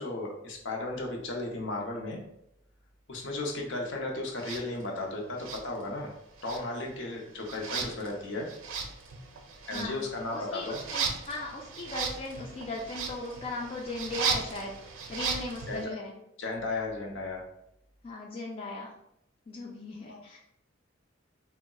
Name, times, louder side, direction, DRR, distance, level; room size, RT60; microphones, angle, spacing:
voice 1, 0.0-2.2 3.1-6.1 6.4-8.5 9.7-10.8 15.7-15.9 16.4-17.4 20.1-20.2, left 2 dB, 65° left, 0 dB, 0.6 m, -35 dB
sound 1, 4.4-4.6 5.4-6.1 6.4-15.8, right 5 dB, 85° right, 0.5 m, -36 dB
voice 2, 9.7-10.0 10.3-14.7 15.1-16.1 18.0-18.9 19.5-20.4, left 2 dB, 30° left, -3 dB, 0.4 m, -37 dB
3.7 x 2.1 x 2.2 m, 0.79 s
head